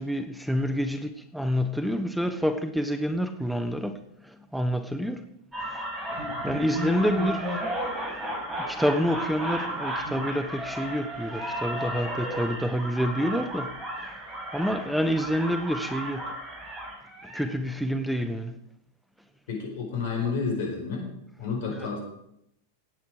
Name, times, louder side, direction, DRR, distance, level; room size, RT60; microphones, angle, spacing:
voice 1, 0.0-5.3 5.6-5.8 6.1-7.6 8.6-14.1 14.5-16.3 17.2-18.6 21.8-21.9, equal, ahead, 1.0 m, -28 dB
sound 1, 5.5-17.5, right 1 dB, 20° right, 5.8 m, -34 dB
voice 2, 19.5-21.1 21.4-22.0, left 5 dB, 65° left, 4.8 m, -30 dB
16.0 x 9.5 x 4.9 m
hypercardioid pair, 95°, 0 cm